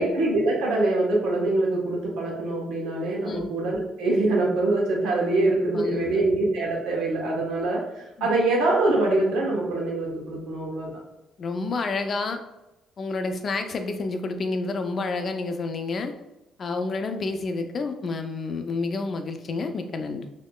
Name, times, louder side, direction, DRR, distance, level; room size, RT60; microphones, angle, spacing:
voice 1, 0.0-10.9, right 2 dB, 80° right, -3 dB, 1.2 m, -24 dB
voice 2, 5.7-6.3 8.2-8.3 11.4-12.4 13.0-16.1 16.6-20.3, left 3 dB, 50° left, 6 dB, 0.5 m, -29 dB
4.3 x 2.8 x 2.3 m, 0.95 s
supercardioid pair, 65°, 0 cm